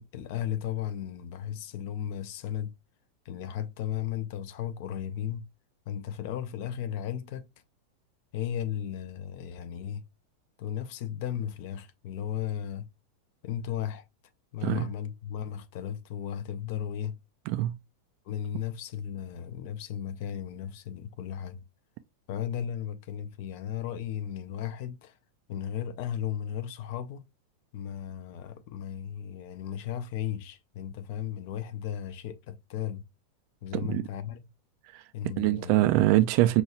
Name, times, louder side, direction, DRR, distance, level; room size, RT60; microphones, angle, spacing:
voice 1, 0.0-2.7 3.3-5.4 5.9-7.5 8.3-10.0 10.6-12.9 13.4-14.0 14.5-17.2 18.3-21.6 22.3-25.1 25.5-27.2 27.7-33.1 33.6-34.5 35.1-35.9, left 10 dB, 50° left, 0.6 m, -35 dB
voice 2, 17.5-17.8 33.7-34.0 34.9-35.0 35.4-36.6, right 15 dB, 45° right, 0.3 m, -23 dB
6.0 x 2.3 x 2.9 m
figure-of-eight pair, 90°, 0 cm